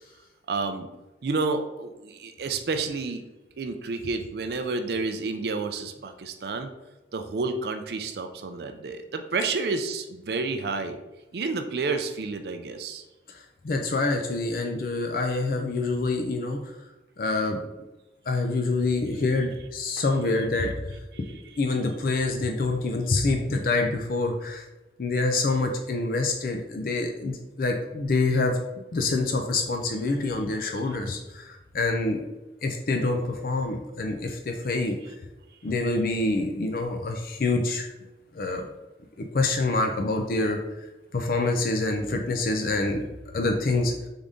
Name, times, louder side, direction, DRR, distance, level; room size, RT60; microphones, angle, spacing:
voice 1, 0.5-0.9 1.2-3.2 3.6-6.7 7.1-11.0 11.3-13.0 20.0-20.1 21.1-21.6 34.8-35.1, right 4 dB, 65° right, 7 dB, 0.4 m, -30 dB
voice 2, 13.3-16.6 17.2-17.6 18.3-20.9 21.6-24.6 25.0-28.6 28.9-32.2 32.6-35.0 35.6-37.9 38.3-38.7 39.3-40.6 41.1-43.0 43.3-43.9, left 3 dB, 55° left, 3 dB, 0.4 m, -26 dB
3.8 x 3.5 x 3.7 m, 1.1 s
head